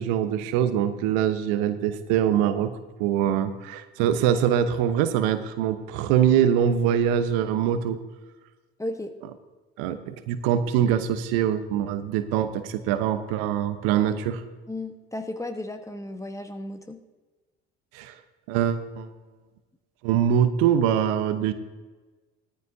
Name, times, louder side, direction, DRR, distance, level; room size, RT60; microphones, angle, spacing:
voice 1, 0.0-8.0 9.8-14.4 17.9-18.2 18.5-19.1 20.0-21.5, right 9 dB, 70° right, 10 dB, 1.0 m, -23 dB
voice 2, 8.8-9.1 14.7-17.0, left 1 dB, 10° left, 7 dB, 1.2 m, -34 dB
18.0 x 13.5 x 2.7 m, 1.3 s
hypercardioid pair, 60°, 34 cm